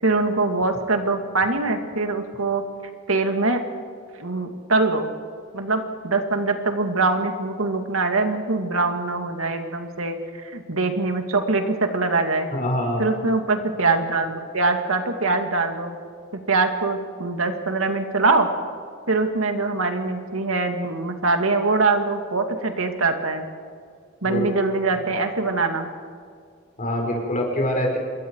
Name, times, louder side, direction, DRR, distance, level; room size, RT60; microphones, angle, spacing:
voice 1, 0.0-2.6 3.1-3.6 4.2-5.1 5.5-10.1 10.4-12.5 13.0-16.0 16.3-18.5 19.1-23.5 24.2-25.9, right 3 dB, 85° right, 5 dB, 2.4 m, -23 dB
voice 2, 12.5-13.1 24.2-24.6 26.8-28.0, equal, 40° left, 0 dB, 5.4 m, -24 dB
27.0 x 22.5 x 4.8 m, 2.2 s
head